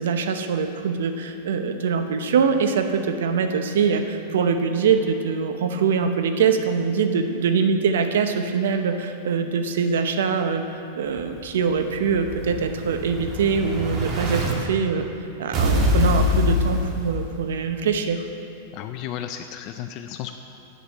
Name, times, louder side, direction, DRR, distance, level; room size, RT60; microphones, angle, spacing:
voice 1, 0.0-10.6 11.0-18.2, right 5 dB, 80° right, 7 dB, 0.8 m, -23 dB
Explosion, 11.2-14.5 15.5-17.5, left 1 dB, 35° right, 1.6 m, -24 dB
voice 2, 18.7-20.3, left 10 dB, 45° left, 7 dB, 0.5 m, -33 dB
8.2 x 8.0 x 7.3 m, 2.6 s
hypercardioid pair, 125°, 0 cm